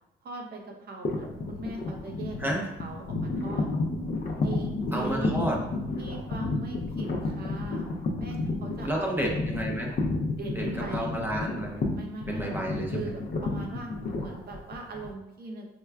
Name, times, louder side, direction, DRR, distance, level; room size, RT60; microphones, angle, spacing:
voice 1, 0.2-2.5 2.8-3.7 4.4-5.5 6.0-7.8 8.2-9.4 10.3-11.1 11.9-12.5 12.9-13.9 14.2-15.7, right 2 dB, 55° right, 1 dB, 0.8 m, -40 dB
sound 1, 1.0-15.1, left 3 dB, 50° left, 0.6 m, -31 dB
voice 2, 4.9-5.6 8.8-9.9 10.5-11.8 12.3-13.1, right 1 dB, 10° right, -1 dB, 0.7 m, -31 dB
4.7 x 2.2 x 2.3 m, 0.91 s
cardioid pair, 90°, 20 cm